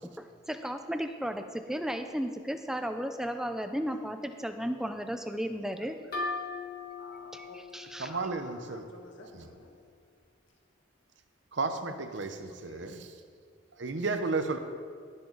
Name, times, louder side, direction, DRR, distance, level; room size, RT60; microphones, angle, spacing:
voice 1, 0.0-6.0 7.3-8.1, equal, 5° right, 7 dB, 0.5 m, -34 dB
sound 1, 6.1-9.7, left 3 dB, 50° left, 1.9 m, -40 dB
voice 2, 7.0-7.6 8.0-9.7 10.5-10.6 12.5-12.9, left 2 dB, 80° left, 1 dB, 1.9 m, -51 dB
voice 3, 8.0-8.9 11.5-13.1 13.8-14.6, right 3 dB, 65° right, 8 dB, 0.8 m, -33 dB
18.0 x 7.7 x 4.0 m, 2.1 s
head